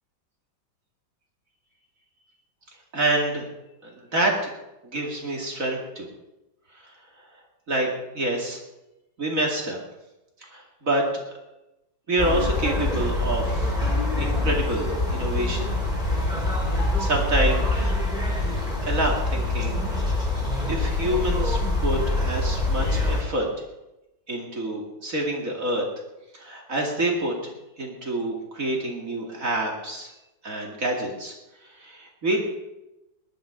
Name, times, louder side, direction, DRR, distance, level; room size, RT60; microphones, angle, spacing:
voice 1, 2.9-3.5 3.8-4.5 4.8-6.1 7.7-8.6 9.2-9.8 10.4-11.0 12.1-13.7 14.2-15.7 16.7-17.9 18.8-20.2 20.7-23.5 24.3-25.8 26.3-30.1 30.4-31.3 31.8-32.4, right 1 dB, 45° right, 0 dB, 2.8 m, -27 dB
sound 1, 12.2-23.2, left 2 dB, 25° left, 4.1 m, -25 dB
19.0 x 11.5 x 5.1 m, 0.97 s
omnidirectional pair, 2.0 m